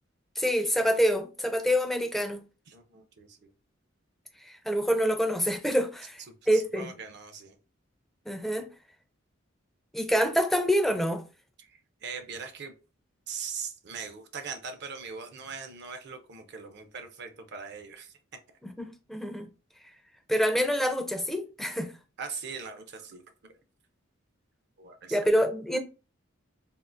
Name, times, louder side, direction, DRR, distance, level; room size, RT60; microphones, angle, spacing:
voice 1, 0.4-2.4 4.4-6.2 6.5-6.9 8.3-8.7 9.9-11.2 18.6-19.5 20.3-21.9 25.1-25.8, equal, ahead, 0.4 m, -26 dB
voice 2, 2.7-3.5 6.5-7.6 11.6-12.7 13.3-18.1 22.2-23.5 24.8-25.2, right 5 dB, 55° right, 0.5 m, -41 dB
3.6 x 2.4 x 2.5 m
head